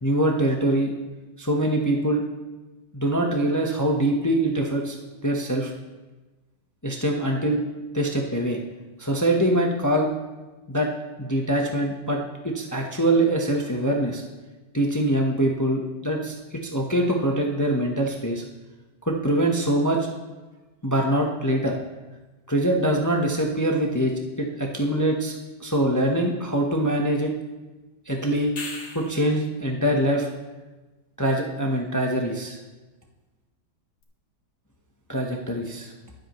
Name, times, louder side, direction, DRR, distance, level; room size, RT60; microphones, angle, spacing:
voice 1, 0.0-0.9 1.4-2.2 2.9-5.0 5.2-5.7 6.8-7.6 7.9-8.6 9.0-10.1 10.7-10.9 11.2-14.2 14.7-18.4 19.1-20.1 20.8-21.7 22.5-25.3 25.6-27.3 28.1-28.5 28.9-30.3 31.2-32.6 35.1-35.9, right 1 dB, 20° left, 1 dB, 0.5 m, -23 dB
sound 1, 28.4-29.3 34.0-34.1, left 3 dB, 65° left, 2.2 m, -37 dB
23.0 x 7.8 x 3.1 m, 1.2 s
omnidirectional pair, 2.3 m